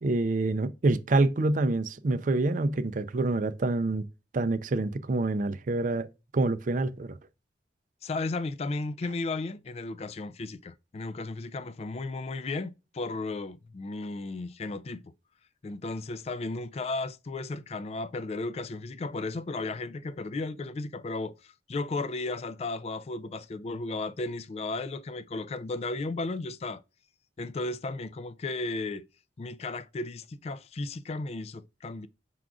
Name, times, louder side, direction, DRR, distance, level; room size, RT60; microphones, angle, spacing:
voice 1, 0.0-4.0 4.3-6.1 6.3-7.2, right 2 dB, 45° right, 0.4 m, -26 dB
voice 2, 8.0-15.1 15.6-26.8 27.4-29.1 29.4-32.1, left 3 dB, 35° left, 0.3 m, -34 dB
5.9 x 3.7 x 2.3 m
head